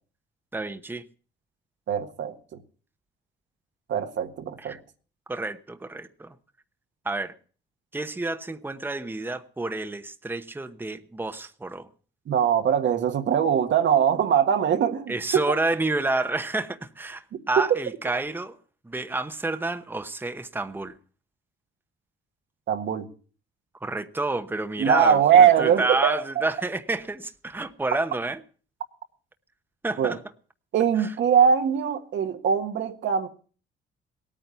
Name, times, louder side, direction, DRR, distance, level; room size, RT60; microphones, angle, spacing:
voice 1, 0.5-1.0 4.6-4.8 5.3-6.3 7.0-7.3 7.9-11.9 15.1-18.6 18.8-20.9 23.8-28.4 29.8-30.2 31.0-31.1, right 2 dB, 10° right, 1.0 m, -29 dB
voice 2, 1.9-2.3 3.9-4.8 12.3-15.4 17.6-17.8 22.7-23.1 24.8-26.4 30.0-30.2 30.7-33.3, right 8 dB, 70° right, 1.5 m, -21 dB
17.5 x 9.1 x 7.0 m
cardioid pair, 90°, 20 cm